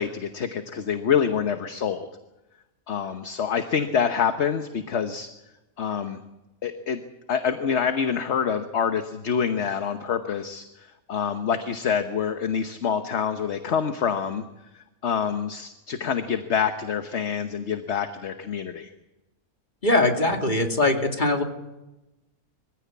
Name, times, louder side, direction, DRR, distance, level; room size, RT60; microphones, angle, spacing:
voice 1, 0.0-2.1 2.9-5.3 5.8-6.2 6.6-7.0 7.3-14.4 14.7-18.9, left 7 dB, 55° left, 8 dB, 1.3 m, -26 dB
voice 2, 19.8-21.4, left 2 dB, 35° left, 3 dB, 2.7 m, -21 dB
24.0 x 15.5 x 8.4 m, 1.0 s
omnidirectional pair, 1.5 m